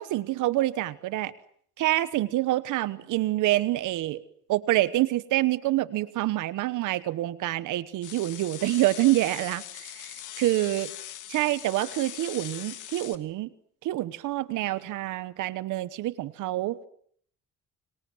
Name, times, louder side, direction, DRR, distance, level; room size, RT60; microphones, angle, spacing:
voice 1, 0.0-1.3 1.8-4.2 4.5-10.1 10.4-10.9 11.3-13.5 13.8-16.8, right 16 dB, 90° right, 17 dB, 1.2 m, -27 dB
sound 1, 8.0-13.1, left 12 dB, 80° left, 2.3 m, -41 dB
29.5 x 24.5 x 7.8 m, 0.63 s
cardioid pair, 90°, 30 cm